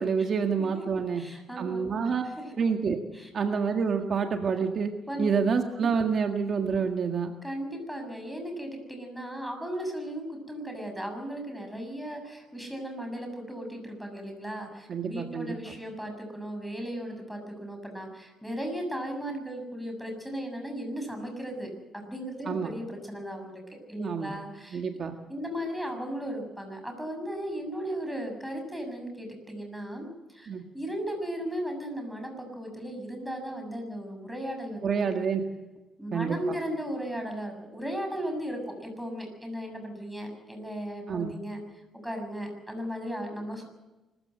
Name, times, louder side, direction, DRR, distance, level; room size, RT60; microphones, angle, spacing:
voice 1, 0.0-1.2 1.6-2.3 2.6-3.0 3.3-4.9 5.2-7.3 14.9-15.7 22.5-22.7 24.0-24.4 24.7-25.2 30.5-30.6 34.8-35.4 36.1-36.4 41.1-41.3, right 6 dB, 55° right, 5 dB, 1.8 m, -28 dB
voice 2, 1.2-1.8 2.2-2.4 3.1-3.3 5.1-5.3 7.4-24.8 25.3-35.2 36.0-41.6 41.9-43.7, equal, ahead, 3 dB, 7.1 m, -36 dB
24.5 x 15.0 x 7.8 m, 1.1 s
cardioid pair, 90°, 0 cm